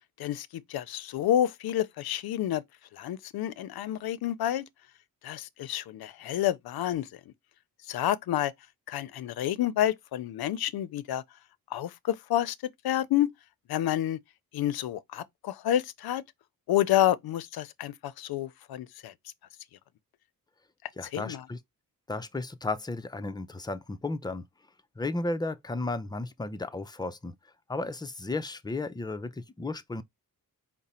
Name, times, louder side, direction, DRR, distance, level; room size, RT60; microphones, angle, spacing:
voice 1, 0.2-2.6 2.9-4.6 5.2-7.1 7.9-8.5 8.9-11.2 11.7-13.3 13.7-14.2 14.5-16.2 16.7-19.1 21.1-21.4, left 12 dB, 90° left, 0.5 m, -29 dB
voice 2, 21.0-21.6 22.1-24.4 25.0-27.3 27.7-30.0, left 2 dB, 10° left, 0.4 m, -34 dB
4.9 x 2.1 x 4.2 m
cardioid pair, 100°, 36 cm